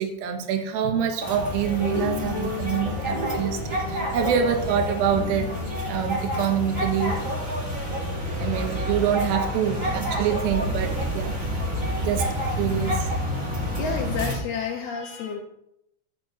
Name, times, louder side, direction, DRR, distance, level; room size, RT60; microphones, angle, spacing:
voice 1, 0.0-5.5 5.9-7.5 8.4-11.4 12.0-13.1, right 8 dB, 85° right, 4 dB, 2.1 m, -26 dB
sound 1, 1.2-14.3, equal, 55° right, 0.8 m, -28 dB
sound 2, 1.8-7.4, left 4 dB, 40° left, 2.2 m, -35 dB
voice 2, 13.8-15.4, left 6 dB, 85° left, 1 dB, 2.2 m, -30 dB
12.0 x 3.9 x 7.8 m, 0.79 s
omnidirectional pair, 5.7 m